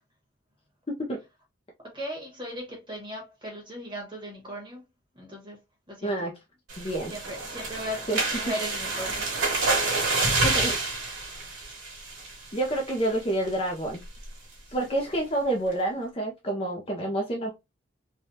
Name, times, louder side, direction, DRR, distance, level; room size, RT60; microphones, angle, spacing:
voice 1, 0.9-1.2 6.0-6.3 6.8-7.1 8.1-8.2 10.4-10.8 12.5-14.0 14.7-17.5, right 1 dB, 30° left, 0.5 m, -28 dB
voice 2, 1.8-4.8 5.1-5.6 5.9-6.1 6.8-8.0 8.4-9.3, equal, 25° right, 1.2 m, -37 dB
sound 1, 6.7-12.5 12.9-13.2 13.5-13.6 13.9-14.2, right 3 dB, 75° right, 1.3 m, -28 dB
3.3 x 2.2 x 2.7 m
head